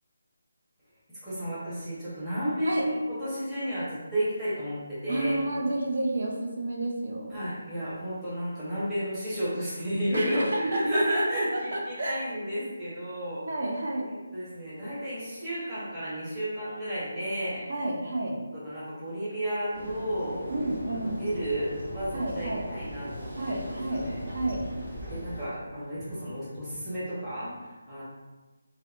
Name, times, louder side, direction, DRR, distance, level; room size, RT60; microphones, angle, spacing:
voice 1, 1.2-5.4 7.3-13.4 14.3-17.6 18.5-20.4 21.2-24.2 25.1-28.0, equal, 10° right, -13 dB, 0.9 m, -32 dB
voice 2, 5.1-7.5 10.1-11.3 11.5-12.2 13.4-14.1 17.7-18.4 20.5-21.2 22.1-22.7 23.3-24.6, right 1 dB, 60° right, -1 dB, 0.5 m, -31 dB
sound 1, 19.7-25.4, equal, 40° right, 1.0 m, -39 dB
2.7 x 2.1 x 2.4 m, 1.2 s
figure-of-eight pair, 165°, 0 cm